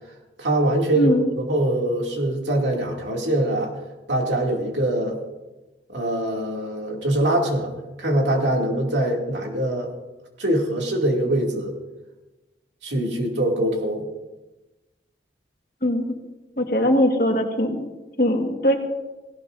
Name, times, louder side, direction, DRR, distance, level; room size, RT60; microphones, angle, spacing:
voice 1, 0.4-3.7 4.1-5.2 5.9-7.7 8.0-9.9 10.4-11.8 12.8-14.1, right 1 dB, 85° right, 0 dB, 2.5 m, -23 dB
voice 2, 15.8-16.1 16.6-17.9 18.2-18.7, left 1 dB, 50° left, 3 dB, 1.6 m, -20 dB
17.5 x 17.5 x 2.6 m, 1.1 s
head